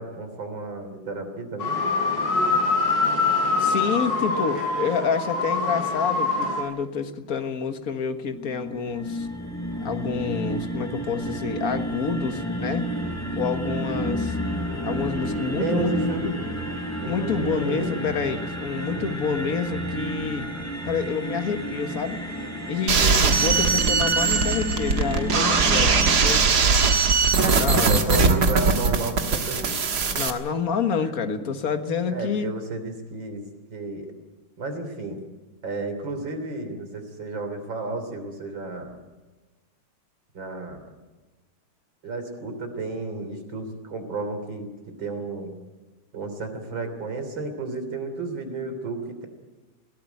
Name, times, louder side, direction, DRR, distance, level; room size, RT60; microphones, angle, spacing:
voice 1, 0.0-1.8 15.6-16.2 17.0-18.1 18.9-19.2 22.9-23.2 27.9-29.8 31.0-31.4 32.1-33.4 33.7-34.1 34.6-35.2 35.6-39.0 40.3-40.8 42.0-45.5 46.1-49.3, right 3 dB, 80° right, 6 dB, 4.0 m, -32 dB
sound 1, 1.6-6.6, left 3 dB, 65° left, 5.3 m, -24 dB
voice 2, 3.6-9.3 9.8-12.9 13.4-14.4 14.8-16.3 17.1-20.5 20.9-22.2 22.7-26.5 27.1-27.2 27.6-28.3 30.1-32.5, left 6 dB, 50° left, 8 dB, 1.8 m, -28 dB
sound 2, 8.2-26.4, equal, 10° left, 5.2 m, -31 dB
sound 3, 22.9-30.3, right 4 dB, 55° right, 2.1 m, -20 dB
20.5 x 17.0 x 9.3 m, 1.2 s
omnidirectional pair, 2.1 m